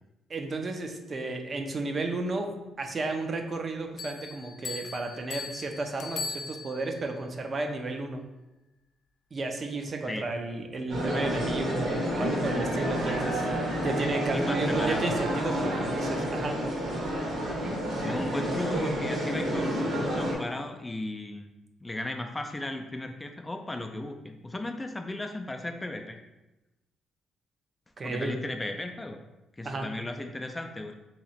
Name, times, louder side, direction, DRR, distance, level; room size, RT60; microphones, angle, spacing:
voice 1, 0.3-8.2 9.3-13.5 13.8-16.6 28.0-28.4 29.6-29.9, right 2 dB, 40° right, 4 dB, 0.5 m, -33 dB
sound 1, 4.0-7.0, left 4 dB, 70° left, 0.5 m, -39 dB
sound 2, 10.9-20.3, equal, 60° right, 1.3 m, -29 dB
voice 2, 14.3-15.1 18.0-21.5 21.8-26.2 28.0-29.2 29.6-31.0, left 1 dB, 15° left, 5 dB, 0.3 m, -35 dB
2.9 x 2.8 x 4.1 m, 1.0 s
cardioid pair, 90°, 0 cm